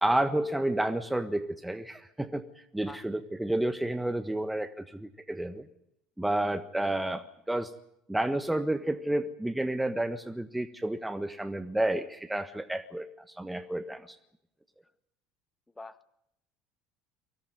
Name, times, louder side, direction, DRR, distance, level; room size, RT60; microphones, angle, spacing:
voice 1, 0.0-5.7 6.2-7.7 8.1-14.2, right 1 dB, 5° right, 10 dB, 1.4 m, -30 dB
voice 2, 15.8-16.1, left 2 dB, 10° left, 11 dB, 1.7 m, -45 dB
24.0 x 17.5 x 9.4 m, 0.77 s
hypercardioid pair, 75°, 0 cm